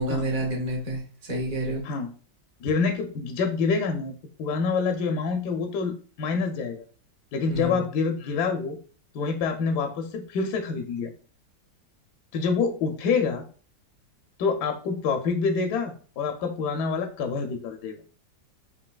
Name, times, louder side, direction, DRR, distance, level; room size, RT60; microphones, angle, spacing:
voice 1, 0.0-1.8 7.5-7.8, right 1 dB, 50° right, -1 dB, 1.4 m, -29 dB
voice 2, 2.6-4.1 4.4-6.8 7.3-8.8 9.1-11.1 12.3-13.4 14.4-18.0, left 5 dB, 70° left, 5 dB, 1.0 m, -27 dB
5.4 x 2.6 x 2.3 m, 0.40 s
omnidirectional pair, 2.0 m